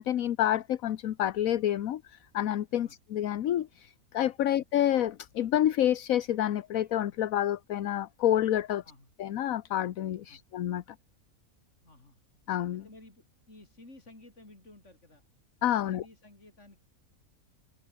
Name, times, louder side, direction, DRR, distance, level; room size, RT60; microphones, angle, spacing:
voice 1, 0.0-8.8 9.2-10.8 12.5-12.8 15.6-16.0, left 11 dB, 75° left, 1.2 m, -28 dB
voice 2, 11.8-12.2 12.7-15.2 15.9-16.8, left 2 dB, 55° left, 6.5 m, -54 dB
omnidirectional pair, 1.5 m